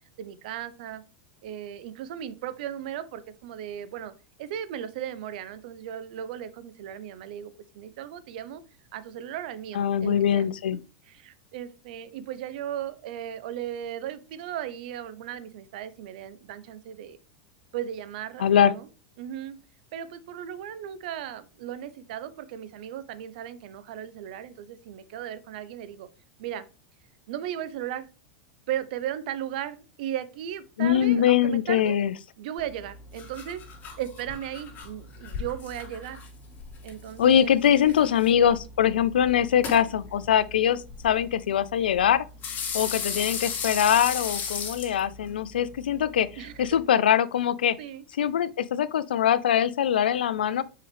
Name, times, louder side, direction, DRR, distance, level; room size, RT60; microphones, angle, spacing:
voice 1, 0.2-1.0 1.4-4.1 4.4-8.6 8.9-10.5 11.0-17.2 17.7-18.9 19.2-19.6 19.9-26.1 26.4-26.6 27.3-28.1 28.7-32.0 32.4-33.6 34.0-36.2 36.8-37.6 42.9-43.3 46.4-46.8 47.8-48.0, right 10 dB, 65° right, 0.8 m, -36 dB
voice 2, 9.7-10.8 18.4-18.7 30.8-32.1 37.2-42.2 42.7-46.3 46.6-47.8 48.2-50.6, left 9 dB, 85° left, 0.4 m, -22 dB
sound 1, 32.6-46.8, left 6 dB, 35° left, 2.2 m, -37 dB
6.7 x 5.0 x 3.4 m
hypercardioid pair, 105°, 5 cm